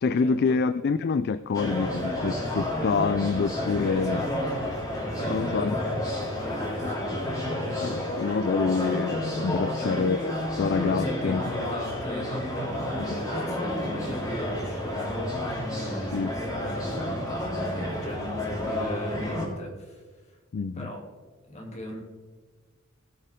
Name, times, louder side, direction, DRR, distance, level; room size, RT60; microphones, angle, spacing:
voice 1, 0.0-4.2 5.3-5.7 7.8-10.3 10.6-11.4 16.1-16.3 20.5-20.9, left 5 dB, 50° left, 14 dB, 0.3 m, -26 dB
sound 1, 1.5-19.5, left 1 dB, 15° left, 2.8 m, -30 dB
voice 2, 3.9-4.3 5.1-6.0 6.3-7.2 7.8-8.0 9.6-10.1 10.8-15.2 15.7-20.0 20.7-21.1 21.5-22.0, equal, 35° left, -1 dB, 2.6 m, -38 dB
19.5 x 6.6 x 3.6 m, 1.4 s
head